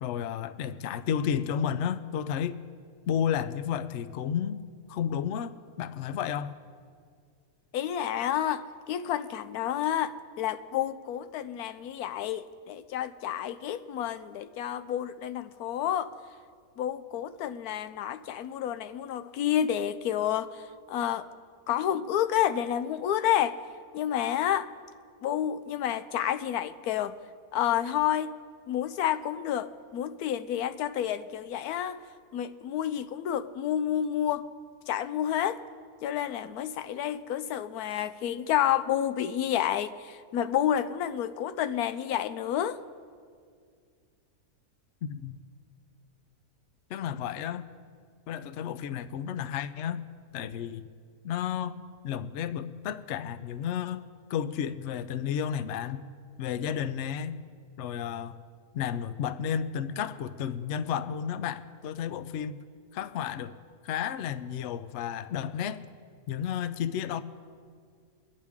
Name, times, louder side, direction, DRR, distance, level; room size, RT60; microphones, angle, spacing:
voice 1, 0.0-2.6 3.1-4.6 4.9-6.6 45.2-45.4 46.9-47.7 48.3-50.0 50.3-50.9 51.2-51.8 52.0-54.0 54.3-56.0 56.4-57.4 57.8-58.4 58.7-62.5 62.9-63.5 63.8-65.8 66.3-67.2, left 8 dB, 65° left, 12 dB, 0.8 m, -32 dB
voice 2, 7.7-16.1 16.8-21.3 21.7-23.6 23.9-24.7 25.2-27.2 27.5-28.3 28.7-32.0 32.3-34.5 34.9-35.6 36.0-42.8, left 10 dB, 90° left, 12 dB, 1.1 m, -29 dB
24.5 x 9.7 x 3.6 m, 2.1 s
omnidirectional pair, 1.6 m